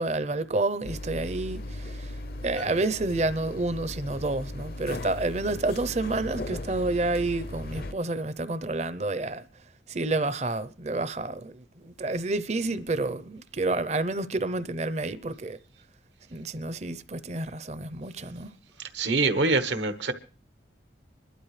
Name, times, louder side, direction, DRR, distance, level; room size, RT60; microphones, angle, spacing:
voice 1, 0.0-15.6 16.3-18.5, right 2 dB, 35° right, 0.6 m, -29 dB
sound 1, 0.8-7.9, left 1 dB, 55° left, 0.6 m, -38 dB
voice 2, 18.9-20.1, right 3 dB, 80° right, 1.2 m, -24 dB
26.0 x 12.0 x 3.3 m
head